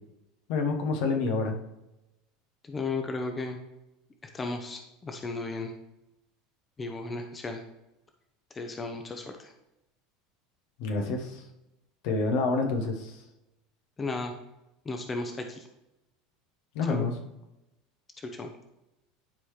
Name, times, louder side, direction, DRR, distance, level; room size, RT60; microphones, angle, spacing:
voice 1, 0.5-1.6 10.8-11.4 12.0-13.2 16.7-17.2, left 3 dB, 60° left, 3 dB, 1.2 m, -28 dB
voice 2, 2.7-3.6 4.3-5.7 6.8-7.6 8.5-9.5 14.0-14.3 14.8-15.6 16.9-17.1 18.3-18.5, left 3 dB, 25° left, 5 dB, 0.9 m, -34 dB
10.5 x 4.8 x 3.2 m, 0.92 s
figure-of-eight pair, 75°, 0 cm